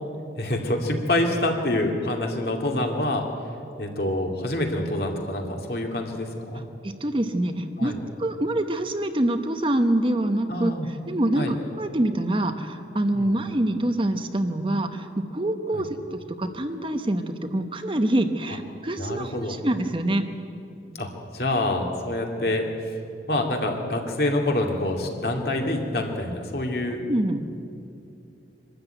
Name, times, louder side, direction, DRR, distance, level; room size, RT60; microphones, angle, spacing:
voice 1, 0.4-3.2 3.8-6.6 7.8-8.0 10.5-10.9 11.3-11.5 13.1-13.3 15.7-15.8 19.0-19.6 21.0-21.1 21.3-22.9 23.3-27.0, left 1 dB, 60° left, 2 dB, 2.5 m, -26 dB
voice 2, 6.8-10.7 11.1-20.3 27.1-27.4, right 1 dB, 30° right, 7 dB, 0.9 m, -25 dB
24.5 x 13.0 x 9.1 m, 2.6 s
head